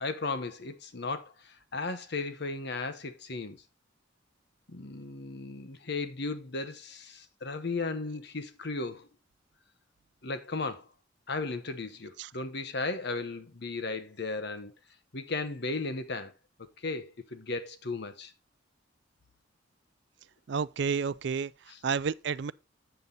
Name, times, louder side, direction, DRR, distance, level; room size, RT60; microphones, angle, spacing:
voice 1, 0.0-3.6 4.7-9.1 10.2-10.9 11.3-14.7 15.1-16.3 16.8-18.3 21.7-21.8, left 3 dB, 60° left, 1.1 m, -35 dB
voice 2, 20.5-21.5 21.8-22.5, right 6 dB, 65° right, 0.4 m, -30 dB
8.0 x 7.3 x 3.9 m
head